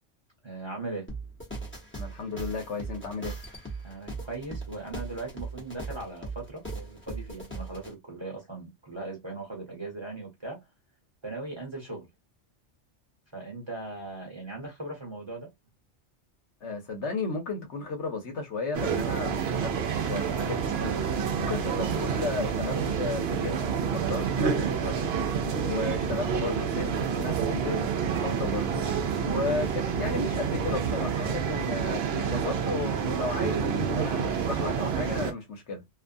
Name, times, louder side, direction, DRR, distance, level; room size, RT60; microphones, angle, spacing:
voice 1, 0.4-1.1 3.8-10.6 11.2-12.1 13.3-15.5 19.2-19.4 21.3-21.5 29.2-29.5, right 2 dB, 25° right, 1.1 m, -39 dB
sound 1, 1.1-7.9, right 3 dB, 10° left, 1.0 m, -39 dB
voice 2, 1.9-3.4 16.6-21.0 21.4-23.6 23.9-25.2 25.6-27.9 28.2-28.9 29.2-35.8, left 3 dB, 70° left, 1.1 m, -34 dB
sound 2, 18.7-35.3, right 6 dB, 65° right, 0.8 m, -28 dB
2.6 x 2.4 x 2.5 m
omnidirectional pair, 1.3 m